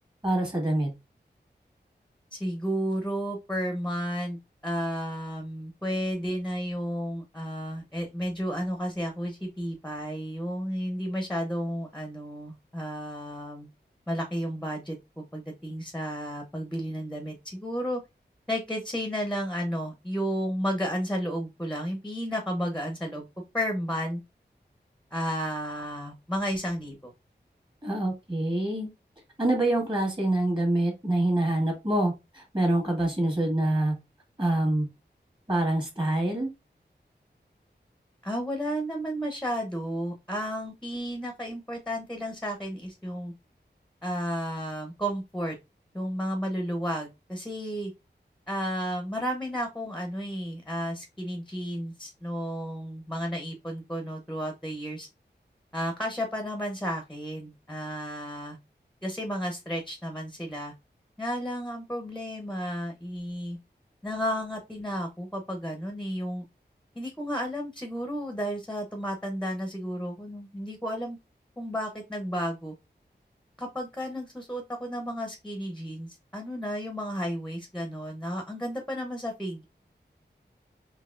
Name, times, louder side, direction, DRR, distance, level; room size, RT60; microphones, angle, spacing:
voice 1, 0.2-0.9 27.8-28.9 29.4-34.0 34.4-34.9 35.5-36.5, right 1 dB, 25° right, 1 dB, 1.8 m, -26 dB
voice 2, 2.3-13.7 14.1-18.0 18.5-23.3 23.5-24.2 25.1-27.1 38.2-43.3 44.0-45.6 45.9-47.9 48.5-55.1 55.7-58.6 59.0-60.7 61.2-63.6 64.0-66.4 66.9-71.2 71.6-72.7 73.6-79.6, equal, 5° left, 3 dB, 0.8 m, -32 dB
4.0 x 2.9 x 2.5 m, 0.24 s
wide cardioid pair, 60°, 18 cm